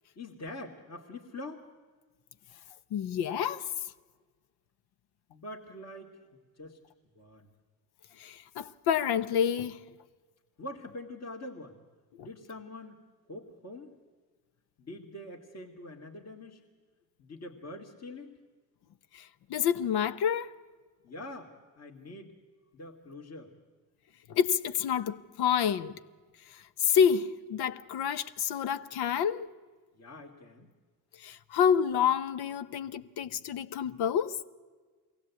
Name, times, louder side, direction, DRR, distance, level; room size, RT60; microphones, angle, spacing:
voice 1, 0.2-1.7 5.3-6.3 6.6-6.8 7.1-7.5 10.6-11.8 12.2-13.9 14.8-16.6 17.2-18.4 21.0-22.4 22.7-23.5 29.9-30.7, left 1 dB, 40° left, 2.4 m, -44 dB
voice 2, 2.9-3.7 8.2-9.8 19.1-20.5 24.3-26.0 26.5-29.5 31.2-34.4, left 8 dB, 70° left, 0.9 m, -28 dB
22.5 x 16.5 x 8.3 m
supercardioid pair, 65°, 41 cm